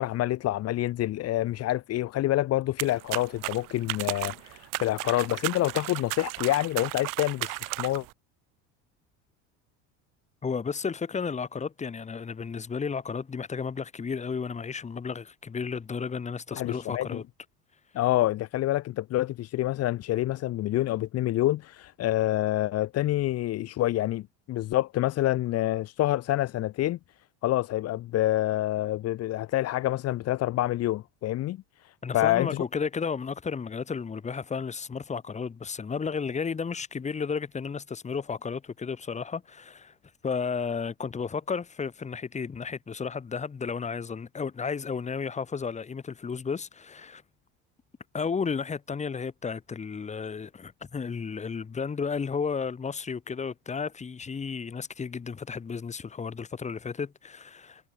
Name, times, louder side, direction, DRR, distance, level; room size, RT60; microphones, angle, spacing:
voice 1, 0.0-8.1 16.5-17.2 17.9-27.0 27.4-32.6, left 15 dB, 45° left, 1.8 m, -27 dB
sound 1, 2.8-8.1, right 23 dB, 65° right, 5.4 m, -35 dB
voice 2, 10.4-17.2 32.0-39.9 40.2-47.2 48.1-57.9, left 5 dB, 20° left, 3.7 m, -33 dB
cardioid pair, 140°, 34 cm